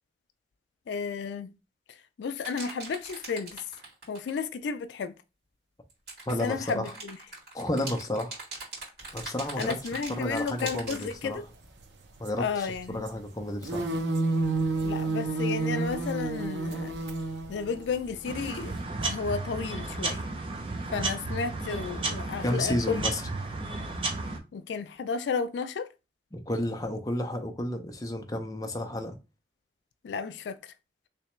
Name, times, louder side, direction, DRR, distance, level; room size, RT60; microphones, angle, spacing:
voice 1, 0.9-1.5 1.9-3.7 4.1-5.1 6.4-7.2 9.6-11.5 12.4-13.0 14.8-17.0 17.5-20.3 20.9-23.0 24.5-25.9 30.0-30.7, left 5 dB, 80° left, 0.3 m, -33 dB
sound 1, 2.4-4.4 5.9-11.2, right 3 dB, 60° right, 2.2 m, -41 dB
voice 2, 6.3-6.9 7.5-8.4 9.1-9.8 10.1-11.4 12.2-13.9 22.4-23.2 26.3-29.2, left 1 dB, 20° left, 0.5 m, -31 dB
sound 2, 9.8-9.9 10.2-10.4 10.8-11.0 12.3-12.7 13.1-13.2 13.4-18.8, right 3 dB, 80° right, 0.7 m, -30 dB
sound 3, 18.2-24.4, right 3 dB, 30° right, 0.6 m, -33 dB
3.3 x 3.1 x 3.0 m
head